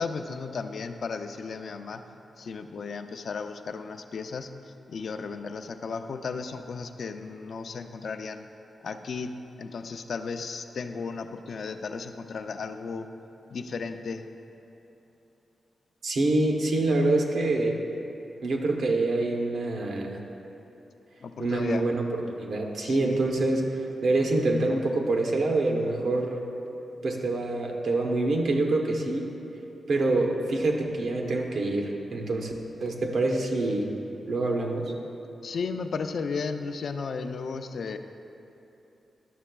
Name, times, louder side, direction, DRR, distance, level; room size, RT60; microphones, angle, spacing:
voice 1, 0.0-2.0 2.4-8.4 8.8-9.3 9.6-13.1 13.5-14.2 21.2-21.8 22.8-23.2 35.4-38.0, left 5 dB, 70° left, 8 dB, 0.3 m, -34 dB
voice 2, 16.0-17.8 18.4-20.2 21.4-22.0 22.4-26.4 27.0-29.3 29.9-32.5 32.8-33.9 34.3-34.9, right 2 dB, 75° right, 1 dB, 0.7 m, -26 dB
11.0 x 6.4 x 2.2 m, 2.9 s
cardioid pair, 95°, 0 cm